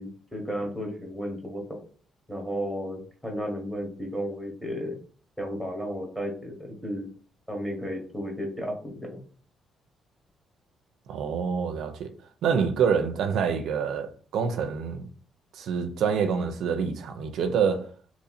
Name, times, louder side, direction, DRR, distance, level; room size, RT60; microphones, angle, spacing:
voice 1, 0.0-1.8 2.3-5.0 5.4-7.1 7.5-9.2, equal, ahead, 1.3 m, -33 dB
voice 2, 11.1-12.1 12.4-15.1 15.5-17.9, right 6 dB, 75° right, 0.5 m, -26 dB
2.9 x 2.7 x 4.1 m
cardioid pair, 90°, 0 cm